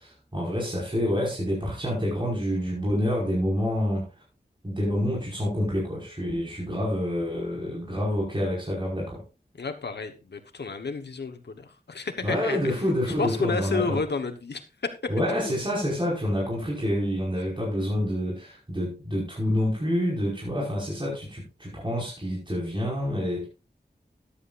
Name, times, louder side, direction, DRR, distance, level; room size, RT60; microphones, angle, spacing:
voice 1, 0.0-4.1 4.6-9.2 12.2-14.0 15.1-23.5, equal, 30° right, -4 dB, 5.2 m, -27 dB
voice 2, 9.6-12.7 13.1-15.3, left 4 dB, 85° left, 6 dB, 1.2 m, -31 dB
13.5 x 10.0 x 2.5 m, 0.30 s
wide cardioid pair, 55°, 17 cm